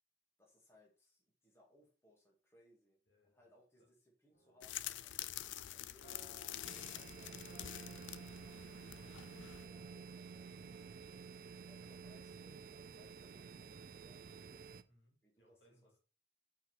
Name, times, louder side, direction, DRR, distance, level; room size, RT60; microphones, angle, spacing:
voice 1, 0.4-6.2 6.6-7.7 8.2-10.9 11.5-14.6 15.2-16.0, left 1 dB, 15° left, 2.0 m, -69 dB
voice 2, 3.1-3.5 9.0-9.2 10.8-12.0 14.9-16.0, equal, 70° left, 3.2 m, -73 dB
sound 1, 4.3-11.4, right 2 dB, 50° left, 1.8 m, -65 dB
sound 2, 4.6-9.6, left 13 dB, 85° left, 0.4 m, -47 dB
sound 3, 6.6-14.8, right 5 dB, 50° right, 0.5 m, -52 dB
5.7 x 5.1 x 6.0 m
head